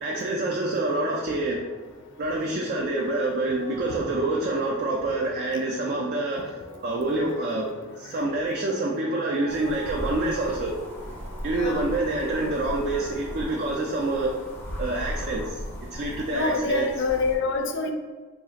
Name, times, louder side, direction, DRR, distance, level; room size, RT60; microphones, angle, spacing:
voice 1, 0.0-1.6 2.2-7.7 8.0-10.7 11.4-14.3 14.8-15.6 15.9-16.9, right 2 dB, 45° right, -1 dB, 0.3 m, -27 dB
sound 1, 0.7-14.3, right 1 dB, 75° right, 0.7 m, -46 dB
sound 2, 9.5-17.4, equal, 10° left, 0.7 m, -37 dB
voice 2, 11.5-11.8 16.3-17.9, left 4 dB, 55° left, 4 dB, 0.4 m, -26 dB
3.2 x 2.4 x 3.8 m, 1.4 s
head